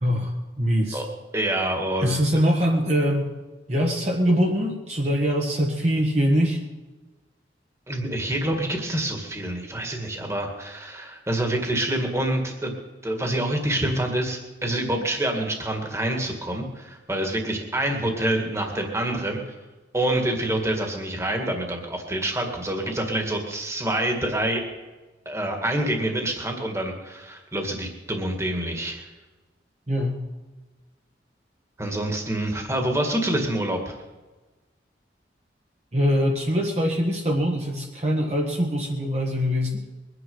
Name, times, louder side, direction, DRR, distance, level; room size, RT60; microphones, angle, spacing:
voice 1, 0.0-1.0 2.0-3.3 3.7-6.6 29.9-30.2 35.9-39.8, equal, 40° right, -1 dB, 1.6 m, -23 dB
voice 2, 1.3-2.4 7.9-12.7 13.0-19.6 19.9-24.6 25.3-29.1 31.8-34.0, right 1 dB, 15° right, 2 dB, 2.0 m, -27 dB
22.5 x 9.9 x 5.5 m, 1.2 s
head